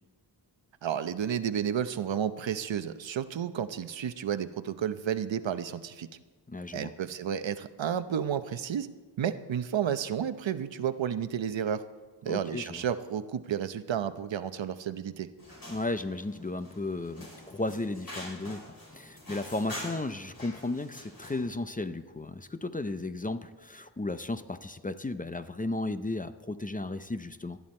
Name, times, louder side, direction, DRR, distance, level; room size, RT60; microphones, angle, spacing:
voice 1, 0.8-6.1 6.7-8.9 9.2-11.8 12.2-15.3, right 9 dB, 90° right, 11 dB, 0.8 m, -31 dB
voice 2, 6.5-6.9 12.3-12.8 15.7-27.6, left 2 dB, 20° left, 10 dB, 0.6 m, -34 dB
sound 1, 15.4-21.5, left 1 dB, 50° left, 5.7 m, -46 dB
18.5 x 12.5 x 4.3 m, 1.3 s
wide cardioid pair, 115°, 44 cm